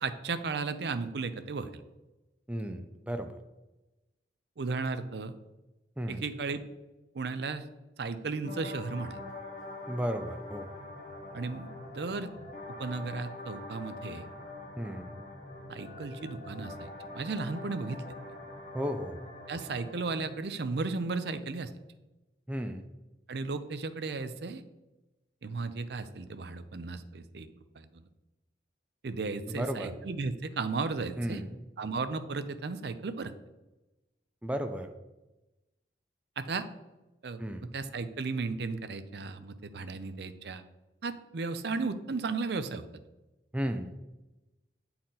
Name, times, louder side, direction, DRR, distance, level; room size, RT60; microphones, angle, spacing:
voice 1, 0.0-1.7 4.6-5.3 6.1-6.6 7.1-7.6 8.0-9.2 11.3-12.3 12.8-14.2 15.7-18.0 19.5-21.7 23.3-24.6 25.4-28.0 29.0-31.4 31.8-33.3 36.4-36.7 37.2-40.6 41.0-42.9, right 4 dB, 70° right, 11 dB, 0.5 m, -35 dB
voice 2, 2.5-3.3 6.0-6.2 9.9-10.7 14.8-15.1 18.7-19.2 22.5-22.9 29.5-29.9 31.2-31.6 34.4-34.9 37.4-37.7 43.5-43.9, equal, 5° right, 7 dB, 0.4 m, -34 dB
sound 1, 8.4-20.4, left 2 dB, 45° left, 1.0 m, -44 dB
8.7 x 4.3 x 3.9 m, 1.0 s
head